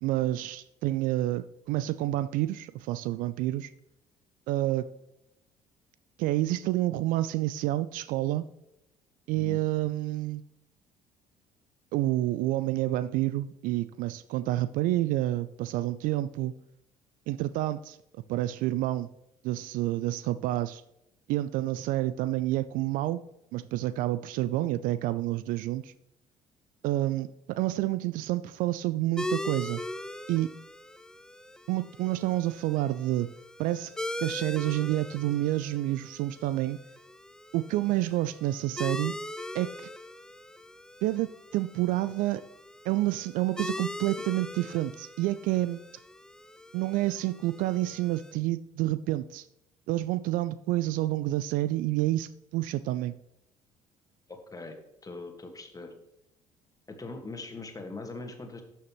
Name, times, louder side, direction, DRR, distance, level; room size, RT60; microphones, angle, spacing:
voice 1, 0.0-3.7 4.5-4.9 6.2-8.4 9.3-10.4 11.9-16.5 17.3-18.0 18.3-19.1 19.4-20.8 21.3-23.2 23.5-25.9 26.8-29.8 30.3-30.5 31.7-33.3 33.6-33.9 34.2-36.8 37.5-39.1 39.5-39.9 41.0-42.4 42.8-45.8 46.7-49.5 49.9-53.2, right 15 dB, 55° right, 16 dB, 0.4 m, -29 dB
sound 1, 29.2-48.3, left 1 dB, 5° left, 0.5 m, -41 dB
voice 2, 54.3-54.8 55.0-55.9 56.9-58.6, left 3 dB, 20° left, 4 dB, 1.8 m, -41 dB
12.0 x 6.4 x 3.1 m, 0.85 s
figure-of-eight pair, 50°, 17 cm